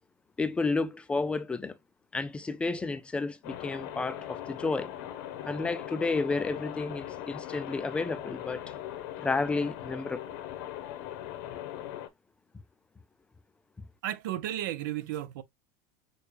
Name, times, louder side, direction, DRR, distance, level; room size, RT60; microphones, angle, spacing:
voice 1, 0.4-1.7 2.1-4.9 5.4-8.7 9.2-10.3, left 3 dB, 10° left, 0.3 m, -31 dB
sound 1, 3.4-12.1, left 12 dB, 70° left, 0.9 m, -40 dB
voice 2, 14.0-15.4, right 12 dB, 90° right, 0.6 m, -33 dB
6.5 x 2.3 x 3.2 m
supercardioid pair, 150°, 10 cm